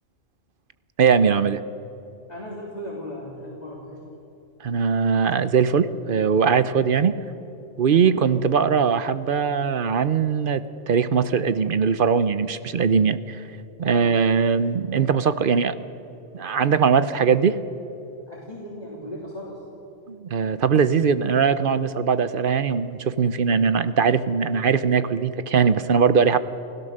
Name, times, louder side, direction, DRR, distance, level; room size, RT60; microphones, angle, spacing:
voice 1, 1.0-1.6 4.6-7.2 7.8-13.4 13.8-15.8 16.3-17.6 20.1-26.4, right 6 dB, 50° right, 13 dB, 0.8 m, -20 dB
voice 2, 2.3-4.1 7.9-8.1 13.9-14.2 18.3-19.6, equal, 35° left, -5 dB, 3.5 m, -37 dB
29.5 x 16.5 x 6.6 m, 2.9 s
omnidirectional pair, 1.3 m